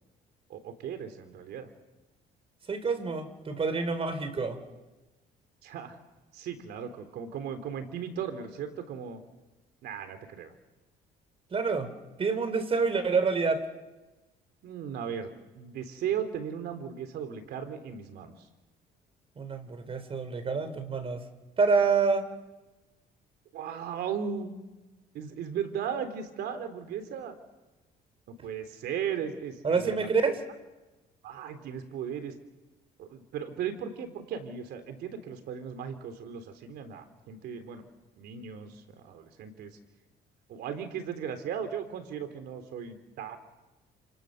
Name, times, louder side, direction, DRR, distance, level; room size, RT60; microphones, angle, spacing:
voice 1, 0.5-1.7 5.6-6.0 6.3-9.2 9.8-10.5 14.6-15.3 15.6-18.3 23.5-24.5 25.1-27.4 28.3-30.1 31.2-32.3 33.0-37.9 38.2-39.7 40.5-43.4, right 8 dB, 75° right, 8 dB, 3.5 m, -36 dB
voice 2, 2.7-4.6 11.5-11.9 12.2-13.6 19.4-21.2 21.6-22.2 29.6-30.4, right 4 dB, 35° right, 10 dB, 4.0 m, -27 dB
30.0 x 28.0 x 6.7 m, 1.1 s
cardioid pair, 110°, 17 cm